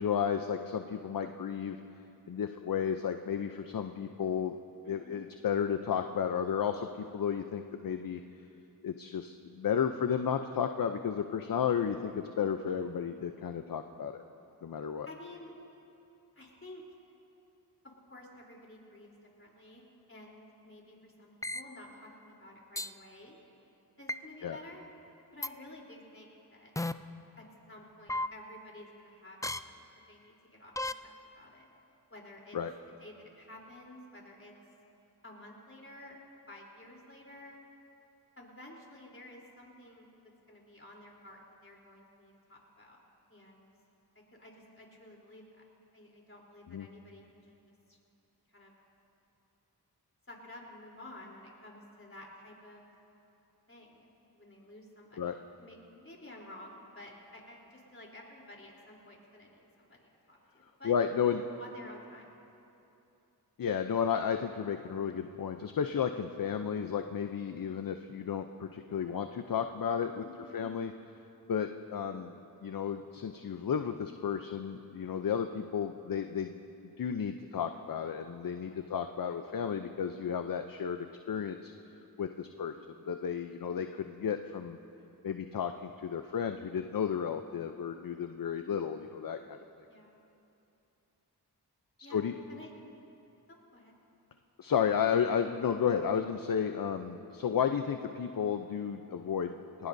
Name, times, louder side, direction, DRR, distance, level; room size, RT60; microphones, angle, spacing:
voice 1, 0.0-1.8 2.3-4.5 4.9-8.2 8.8-14.2 14.6-15.1 24.4-24.6 32.5-32.7 46.7-46.9 55.2-55.4 60.8-61.4 63.6-70.2 70.5-70.9 71.5-72.3 72.6-76.6 77.0-81.7 82.2-82.7 83.1-84.8 85.2-89.6 92.1-92.4 94.6-99.9, left 7 dB, 55° left, 7 dB, 0.6 m, -33 dB
voice 2, 4.9-5.2 12.6-12.9 15.1-15.5 16.3-16.8 18.1-19.1 19.4-23.4 24.0-24.8 25.3-26.7 27.4-31.7 32.1-32.6 33.0-34.5 35.2-36.2 36.5-37.7 38.4-40.1 40.5-43.0 43.3-43.7 44.4-45.6 45.9-47.6 47.9-48.0 48.5-48.7 50.3-52.8 53.7-61.0 61.3-62.3 70.2-70.6 75.2-75.6 78.7-78.9 82.7-82.8 87.1-87.4 89.9-90.2 92.0-92.2 92.5-92.7 93.5-93.9, left 1 dB, 30° left, -2 dB, 3.5 m, -52 dB
sound 1, 21.4-21.6 22.8-22.9 24.1-24.2 25.4-25.5 26.8-26.9 28.1-28.3 29.4-29.6 30.8-30.9, left 2 dB, 10° left, 0.4 m, -33 dB
21.0 x 19.5 x 2.7 m, 2.8 s
cardioid pair, 50°, 40 cm